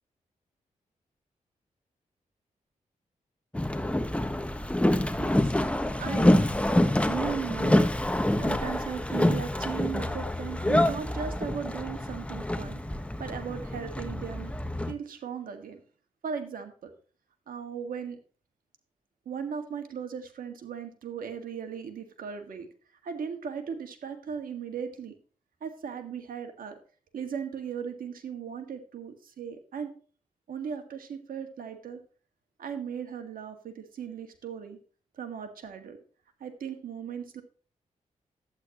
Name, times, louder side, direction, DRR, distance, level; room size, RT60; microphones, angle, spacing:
Boat Water vehicle, 3.5-14.9, left 1 dB, 10° left, 1.2 m, -26 dB
voice 1, 4.8-12.9 13.2-14.5 14.9-15.8 16.2-16.9 17.5-18.2 19.3-22.7 23.0-25.1 25.6-26.8 27.1-29.9 30.5-32.0 32.6-34.8 35.2-36.0 36.4-37.4, right 7 dB, 80° right, 6 dB, 1.8 m, -37 dB
11.5 x 8.5 x 3.0 m, 0.39 s
cardioid pair, 55°, 14 cm